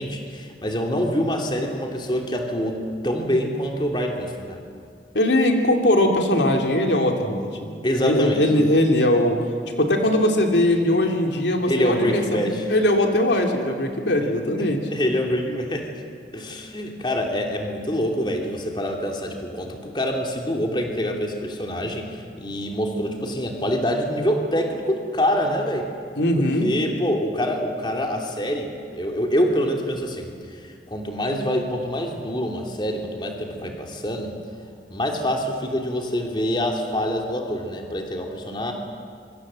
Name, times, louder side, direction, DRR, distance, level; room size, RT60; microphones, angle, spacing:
voice 1, 0.0-4.6 7.8-8.5 11.7-12.7 14.6-15.9 16.3-25.9 26.4-34.3 34.9-38.7, equal, 25° left, 2 dB, 2.8 m, -25 dB
voice 2, 5.1-9.4 9.8-12.4 12.7-14.8 26.2-26.7, left 1 dB, 85° left, 3 dB, 2.9 m, -20 dB
25.5 x 24.5 x 7.6 m, 2.2 s
head